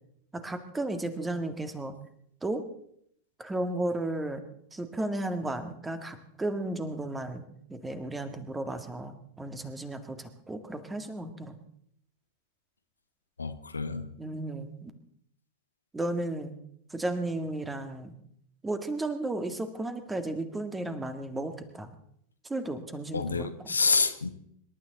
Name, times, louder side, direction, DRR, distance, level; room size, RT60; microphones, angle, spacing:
voice 1, 0.3-1.9 2.4-2.6 3.4-4.4 4.7-7.4 7.7-11.6 14.2-14.9 15.9-16.5 16.9-18.1 18.6-21.9 22.4-23.7, right 2 dB, 10° right, 1.9 m, -34 dB
voice 2, 13.4-14.1 23.1-24.3, left 4 dB, 75° left, 1.1 m, -28 dB
26.0 x 12.0 x 4.1 m
figure-of-eight pair, 90°, 0 cm